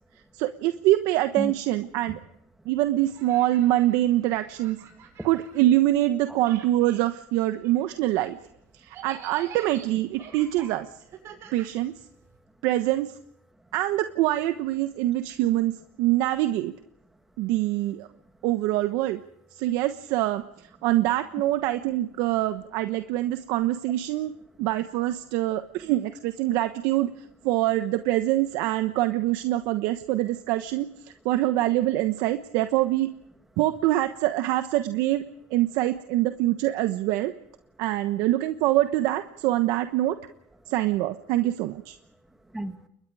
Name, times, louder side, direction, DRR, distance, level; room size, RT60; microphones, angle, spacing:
voice 1, 0.3-2.2 2.7-4.8 5.2-8.4 8.8-10.9 11.5-11.9 12.6-13.1 13.7-16.7 17.4-18.1 18.4-19.2 19.6-20.4 20.8-24.3 24.6-27.1 27.4-30.9 31.2-33.1 33.6-35.2 35.5-37.3 37.8-40.2 40.7-42.0, right 15 dB, 60° right, 9 dB, 1.2 m, -24 dB
sound 1, 3.0-6.1 6.4-12.4, right 7 dB, 40° right, 6.4 m, -48 dB
voice 2, 4.9-5.3 6.3-6.4 11.3-11.5 13.6-13.8 18.1-18.3 20.8-20.9 29.6-29.7 40.6-40.7 42.0-42.9, right 1 dB, 5° right, 6 dB, 2.4 m, -39 dB
29.5 x 22.5 x 5.0 m, 0.72 s
supercardioid pair, 140°, 7 cm